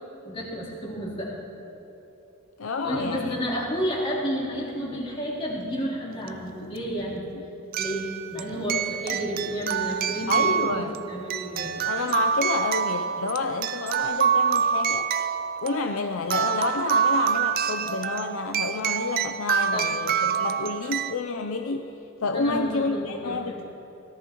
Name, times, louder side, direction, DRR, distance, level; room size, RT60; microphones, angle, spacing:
voice 1, 0.2-1.4 2.8-7.3 7.8-11.8 19.7-19.9 22.3-23.6, equal, 25° left, -7 dB, 3.5 m, -31 dB
voice 2, 2.6-3.6 10.3-11.0 11.8-15.1 15.6-21.9 22.2-23.6, left 4 dB, 65° left, 6 dB, 0.5 m, -29 dB
sound 1, 6.3-6.4 7.7-21.1, right 7 dB, 40° right, 0.4 m, -26 dB
24.0 x 17.5 x 3.0 m, 3.0 s
head